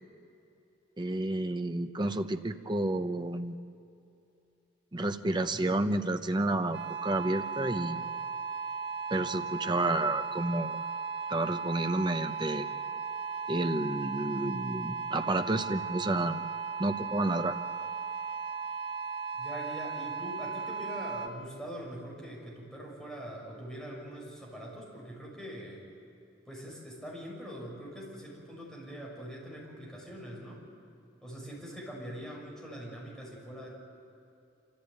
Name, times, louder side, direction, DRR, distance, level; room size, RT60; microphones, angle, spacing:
voice 1, 1.0-3.6 4.9-8.1 9.1-10.8 11.3-12.7 13.5-16.5 16.8-17.6, right 2 dB, 25° right, 7 dB, 0.8 m, -30 dB
sound 1, 6.7-21.3, right 5 dB, 60° right, 1.5 m, -36 dB
voice 2, 19.3-25.8 26.4-30.6 31.2-33.7, equal, ahead, -4 dB, 6.5 m, -43 dB
27.0 x 15.0 x 9.1 m, 2.8 s
head